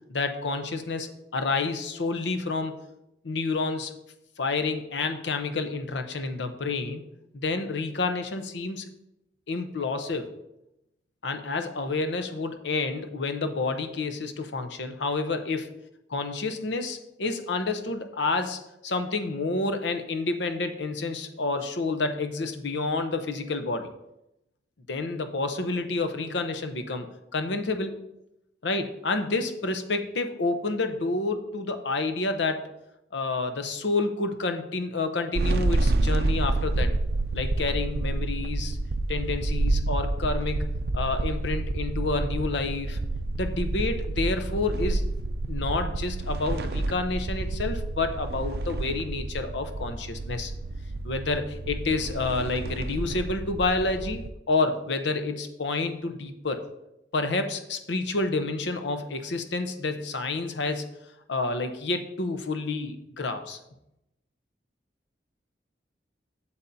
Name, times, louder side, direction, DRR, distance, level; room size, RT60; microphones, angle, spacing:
voice 1, 0.1-2.7 3.2-3.9 4.4-7.0 7.3-8.9 9.5-10.3 11.2-15.7 16.1-23.9 24.9-28.0 28.6-32.6 33.1-36.9 37.3-38.8 39.1-40.7 40.9-43.0 43.4-45.0 45.5-50.5 51.0-56.6 57.1-60.9 61.3-63.6, left 3 dB, 85° left, 7 dB, 0.8 m, -29 dB
sound 1, 35.4-54.3, right 2 dB, 60° right, 0.4 m, -29 dB
8.3 x 7.1 x 2.7 m, 0.85 s
head